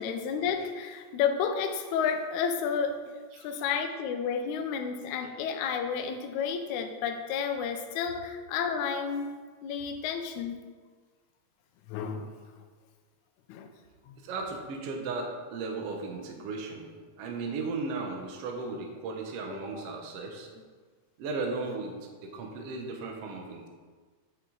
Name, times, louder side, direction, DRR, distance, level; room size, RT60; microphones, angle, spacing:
voice 1, 0.0-3.0 3.4-9.3 9.6-10.6 11.9-12.3 13.5-13.7 14.1-14.2 19.5-19.8, left 6 dB, 75° left, 5 dB, 2.0 m, -31 dB
voice 2, 14.2-16.9 17.2-20.5 21.2-21.9 22.3-23.7, right 3 dB, 65° right, 2 dB, 1.7 m, -35 dB
8.0 x 6.6 x 3.9 m, 1.5 s
omnidirectional pair, 3.6 m